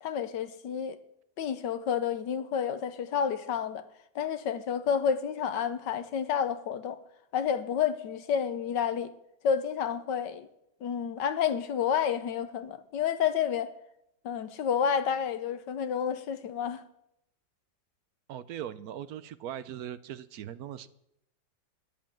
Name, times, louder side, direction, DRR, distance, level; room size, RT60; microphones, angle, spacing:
voice 1, 0.0-1.0 1.4-3.8 4.1-7.0 7.3-9.1 9.4-10.5 10.8-13.7 14.2-16.8, left 8 dB, 70° left, 1.5 m, -30 dB
voice 2, 18.3-20.9, right 10 dB, 65° right, 0.9 m, -40 dB
11.5 x 10.5 x 7.6 m
omnidirectional pair, 2.1 m